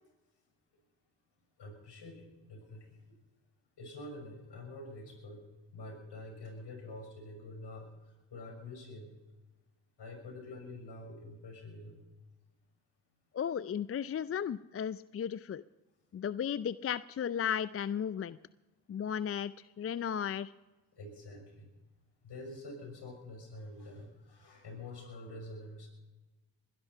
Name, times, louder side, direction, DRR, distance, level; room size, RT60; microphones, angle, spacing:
voice 1, 1.6-3.0 3.8-5.4 5.7-7.9 8.3-9.1 10.0-12.0 20.9-21.7 22.2-25.9, left 2 dB, 60° left, 3 dB, 6.4 m, -47 dB
voice 2, 13.3-15.6 16.1-18.4 18.9-20.5, left 8 dB, 30° left, 17 dB, 0.4 m, -35 dB
21.0 x 12.0 x 5.6 m, 1.1 s
supercardioid pair, 50°, 48 cm